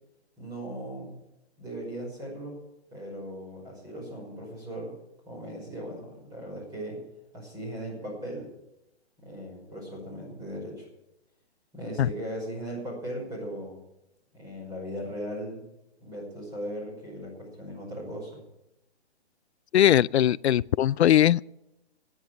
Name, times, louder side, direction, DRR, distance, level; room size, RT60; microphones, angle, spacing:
voice 1, 0.4-1.2 1.6-2.6 2.9-4.9 5.3-7.0 7.3-8.5 9.2-10.9 11.7-13.8 14.3-15.6 16.0-18.4, equal, 10° right, 5.3 m, -38 dB
voice 2, 19.7-21.5, left 11 dB, 75° left, 0.5 m, -20 dB
12.5 x 9.6 x 9.1 m
hypercardioid pair, 160°, 34 cm